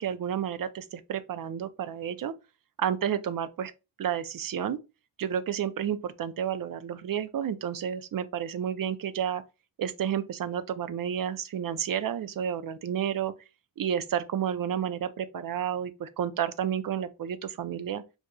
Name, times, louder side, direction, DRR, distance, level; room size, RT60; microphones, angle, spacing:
voice 1, 0.0-2.3 2.8-3.7 4.0-4.8 5.2-9.4 9.8-13.3 13.8-18.0, right 9 dB, 45° right, 0.5 m, -31 dB
4.8 x 2.6 x 2.2 m
cardioid pair, 75°, 47 cm